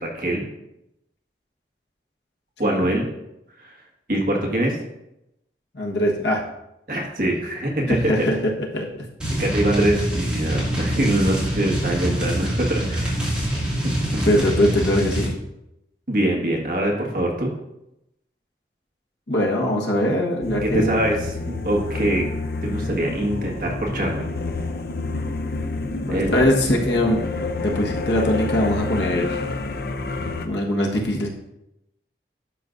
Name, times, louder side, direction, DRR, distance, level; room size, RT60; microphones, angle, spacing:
voice 1, 0.0-0.5 2.6-3.1 3.6-3.8 4.1-4.8 6.9-8.3 9.4-13.3 13.8-14.2 16.1-17.5 19.9-20.1 20.6-22.3 22.6-24.3 26.1-26.3, right 1 dB, 55° right, -1 dB, 1.6 m, -24 dB
voice 2, 5.7-6.4 7.9-8.9 14.2-15.3 19.3-21.0 26.1-27.2 27.6-29.5 30.4-31.3, left 1 dB, 85° left, -1 dB, 1.4 m, -22 dB
sound 1, 9.2-15.3, right 1 dB, 5° right, 2.2 m, -25 dB
sound 2, 20.4-30.5, left 3 dB, 60° left, 0.6 m, -28 dB
11.5 x 6.0 x 2.6 m, 0.87 s
head